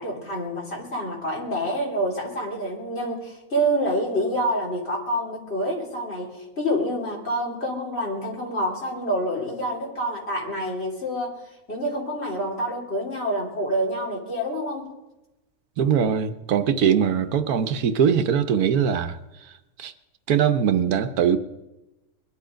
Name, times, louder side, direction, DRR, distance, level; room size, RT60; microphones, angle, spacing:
voice 1, 0.0-11.4 11.7-14.9, equal, 45° left, 3.7 m, -27 dB
voice 2, 15.8-19.2 19.8-19.9 20.3-21.4, right 8 dB, 85° right, 1.3 m, -21 dB
21.5 x 11.0 x 5.1 m
omnidirectional pair, 1.6 m